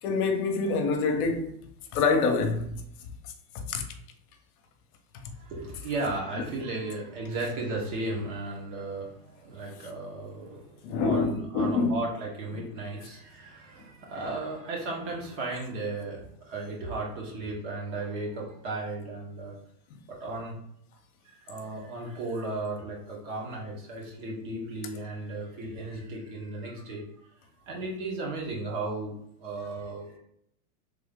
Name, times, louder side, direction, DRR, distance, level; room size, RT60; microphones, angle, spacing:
voice 1, 0.0-1.5 1.9-2.8 3.5-3.8 5.2-5.3 10.8-12.0 19.9-20.0, left 4 dB, 65° left, 0.8 m, -26 dB
voice 2, 5.3-19.6 20.1-20.6 21.2-27.3 27.7-29.1 29.4-30.2, right 2 dB, 45° right, 1.4 m, -35 dB
3.4 x 2.7 x 3.7 m
supercardioid pair, 135°, 47 cm